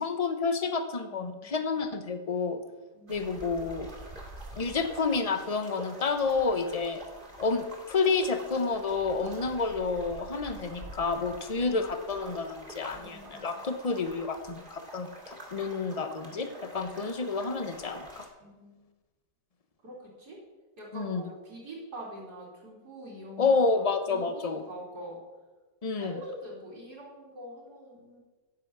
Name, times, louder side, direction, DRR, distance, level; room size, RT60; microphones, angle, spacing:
voice 1, 0.0-2.6 3.1-3.9 4.6-7.0 7.4-18.2 20.9-21.2 23.4-24.6 25.8-26.1, left 4 dB, 35° left, 8 dB, 0.6 m, -29 dB
voice 2, 1.1-1.8 2.9-3.3 12.9-13.6 18.4-18.8 19.8-20.4 20.8-25.2 26.0-28.2, equal, 65° right, -4 dB, 3.7 m, -45 dB
sound 1, 3.1-18.3, right 1 dB, 30° right, 2.5 m, -46 dB
9.8 x 8.1 x 7.3 m, 1.2 s
omnidirectional pair, 1.9 m